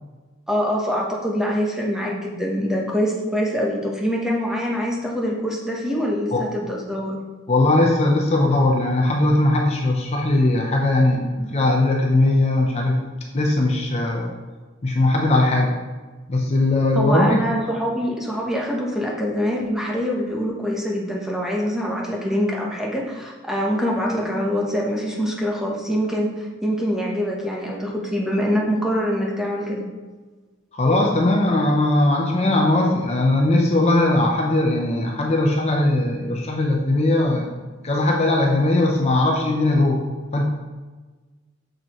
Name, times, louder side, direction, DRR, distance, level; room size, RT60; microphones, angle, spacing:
voice 1, 0.5-7.2 16.9-29.8, equal, 5° right, -2 dB, 0.9 m, -24 dB
voice 2, 7.5-13.0 13.3-14.3 14.8-15.8 16.3-17.4 30.7-37.5 37.8-40.0 40.3-40.4, left 2 dB, 30° left, 0 dB, 0.6 m, -19 dB
6.6 x 6.4 x 3.0 m, 1.3 s
head